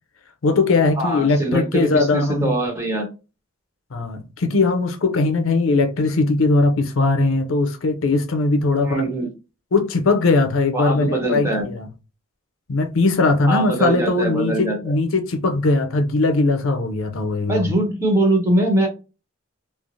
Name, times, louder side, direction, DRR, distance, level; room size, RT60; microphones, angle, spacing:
voice 1, 0.4-2.6 3.9-9.0 9.7-11.9 12.7-17.7, left 3 dB, 80° left, 0.6 m, -20 dB
voice 2, 1.0-3.1 8.8-9.3 10.7-11.7 13.5-14.8 17.5-18.9, right 1 dB, 15° right, 1.0 m, -22 dB
3.1 x 2.0 x 2.5 m
head